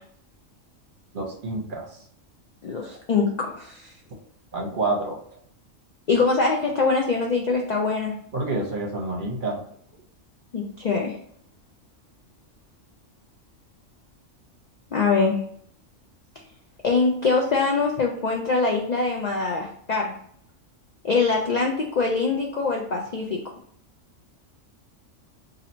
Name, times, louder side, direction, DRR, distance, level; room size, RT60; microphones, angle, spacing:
voice 1, 1.1-2.0 4.5-5.2 8.3-9.6, right 2 dB, 45° right, -1 dB, 0.8 m, -28 dB
voice 2, 2.6-3.9 6.1-8.1 10.5-11.1 14.9-15.4 16.8-20.1 21.0-23.4, left 4 dB, 70° left, 0 dB, 0.4 m, -23 dB
2.7 x 2.7 x 4.2 m, 0.63 s
omnidirectional pair, 1.3 m